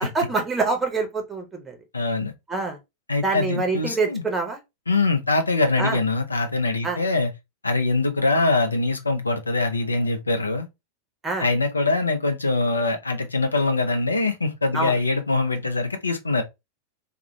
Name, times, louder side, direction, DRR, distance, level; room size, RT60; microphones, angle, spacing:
voice 1, 0.0-1.8 2.5-2.8 3.2-4.6 5.8-6.0 6.8-7.0 11.2-11.5 14.7-15.0, right 3 dB, 15° right, 0.7 m, -25 dB
voice 2, 1.9-2.3 3.1-4.2 4.9-7.3 7.6-10.7 11.4-16.4, left 3 dB, 80° left, 0.5 m, -23 dB
2.4 x 2.2 x 2.9 m
figure-of-eight pair, 90°, 0 cm